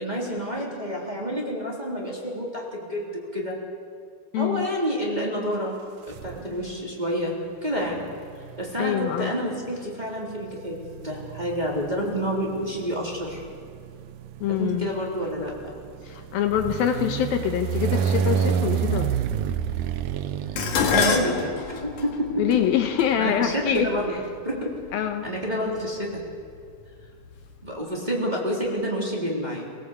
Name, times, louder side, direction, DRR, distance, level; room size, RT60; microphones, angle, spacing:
voice 1, 0.0-3.6 4.3-5.8 6.1-7.4 7.6-8.0 8.6-13.4 14.5-15.7 20.9-22.3 23.2-24.1 24.4-24.7 25.2-26.2 27.6-29.8, equal, 10° right, -3 dB, 3.3 m, -29 dB
voice 2, 4.3-4.7 8.8-9.3 14.4-14.9 16.1-19.1 22.4-24.2 24.9-25.3, left 9 dB, 75° left, 6 dB, 2.7 m, -25 dB
sound 1, 6.1-6.8 7.8-21.5, right 8 dB, 75° right, 1.9 m, -30 dB
Dishes pots and pans, 20.6-24.9 25.8-26.2 26.6-27.4 27.7-27.8, left 6 dB, 55° left, 2.7 m, -28 dB
24.0 x 18.0 x 8.3 m, 2.3 s
omnidirectional pair, 4.5 m